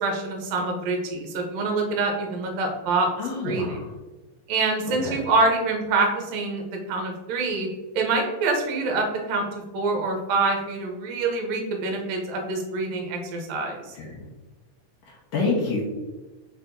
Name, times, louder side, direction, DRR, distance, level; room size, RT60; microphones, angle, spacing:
voice 1, 0.0-3.1 3.4-3.8 4.5-7.7 7.9-13.9, right 3 dB, 70° right, 2 dB, 1.9 m, -26 dB
voice 2, 3.2-3.9 5.0-5.2 14.0-14.1 15.1-15.8, left 3 dB, 70° left, -5 dB, 2.3 m, -27 dB
4.6 x 4.3 x 2.6 m, 1.2 s
omnidirectional pair, 3.5 m